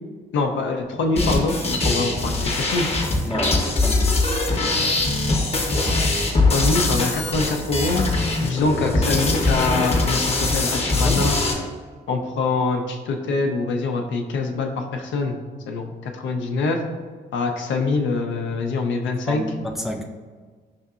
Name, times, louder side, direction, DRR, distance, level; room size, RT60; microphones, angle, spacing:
voice 1, 0.3-1.6 1.8-2.9 6.5-8.1 8.4-11.3 12.1-15.4 15.7-16.8 17.3-19.4, left 3 dB, 65° left, 3 dB, 0.5 m, -24 dB
sound 1, 1.2-11.5, left 2 dB, 30° left, 0.9 m, -22 dB
voice 2, 3.2-4.1 10.9-11.2 19.3-20.0, equal, ahead, 1 dB, 0.5 m, -29 dB
5.7 x 2.7 x 2.4 m, 1.5 s
hypercardioid pair, 55°, 21 cm